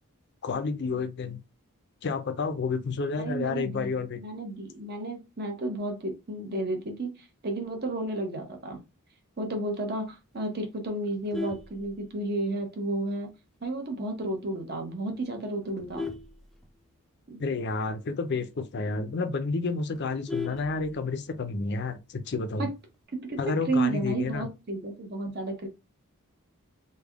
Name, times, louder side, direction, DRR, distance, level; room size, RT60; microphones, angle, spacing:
voice 1, 0.4-1.4 2.0-4.2 17.4-22.7 23.4-24.5, left 4 dB, 50° left, 0.5 m, -30 dB
voice 2, 3.2-8.8 9.4-13.3 13.6-16.1 17.3-17.4 22.6-22.7 23.1-25.7, right 2 dB, 45° right, 0.9 m, -32 dB
Vehicle horn car horn honking, 11.0-12.5 13.0-13.2 13.5-13.6 14.1-14.2 14.5-14.8 15.4-17.2 17.6-17.7 18.0-18.1 18.5-18.6 18.9-19.0 19.3-21.3 22.5-22.9, left 4 dB, ahead, 0.5 m, -38 dB
3.4 x 2.2 x 3.5 m
head